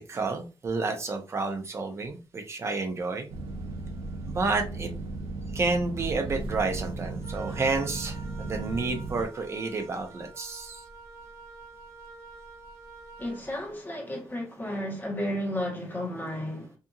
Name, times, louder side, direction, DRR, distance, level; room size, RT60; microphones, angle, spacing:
voice 1, 0.1-3.3 4.2-4.9 5.5-10.8, right 3 dB, 30° right, 0.6 m, -30 dB
sound 1, 3.3-9.3, right 2 dB, 85° right, 0.5 m, -36 dB
Wind instrument woodwind instrument, 7.2-13.5, right 3 dB, 80° left, 0.9 m, -47 dB
voice 2, 13.2-16.7, left 1 dB, 20° left, 1.0 m, -33 dB
2.7 x 2.5 x 2.3 m
wide cardioid pair, 170°, 9 cm